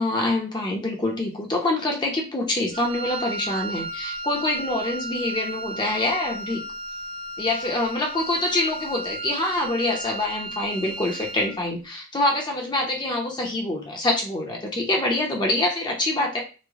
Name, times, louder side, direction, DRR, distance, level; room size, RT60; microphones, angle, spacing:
voice 1, 0.0-6.6 7.4-16.4, left 2 dB, 25° left, 0 dB, 0.6 m, -25 dB
Wind instrument woodwind instrument, 2.7-11.6, right 2 dB, 30° right, 0.3 m, -34 dB
3.1 x 2.0 x 3.5 m, 0.34 s
head